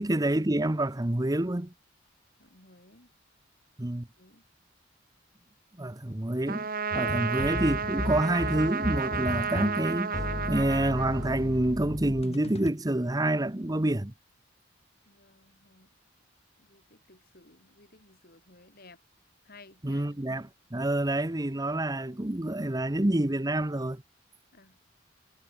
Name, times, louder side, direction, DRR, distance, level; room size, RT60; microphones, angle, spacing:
voice 1, 0.0-1.7 3.8-4.1 5.8-6.7 7.0-10.2 10.5-14.1 19.8-24.0, right 1 dB, 20° right, 1.0 m, -28 dB
voice 2, 2.4-3.1 4.2-4.4 15.0-15.9 16.6-19.0 19.4-20.2 24.5-24.8, left 2 dB, 50° left, 8.0 m, -56 dB
Trumpet, 6.5-11.7, right 5 dB, 50° right, 2.5 m, -32 dB
sound 1, 6.9-12.7, left 2 dB, 30° left, 0.7 m, -35 dB
head